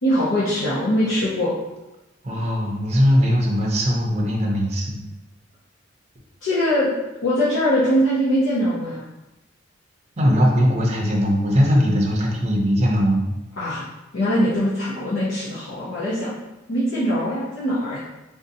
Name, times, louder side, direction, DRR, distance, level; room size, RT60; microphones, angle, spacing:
voice 1, 0.0-1.5 6.4-6.9 7.2-9.0 13.6-13.8 14.1-16.3 16.7-18.0, equal, 80° left, -9 dB, 0.7 m, -22 dB
voice 2, 2.2-5.0 10.2-13.3, equal, 35° right, -2 dB, 0.5 m, -20 dB
3.6 x 2.6 x 2.6 m, 1.0 s
head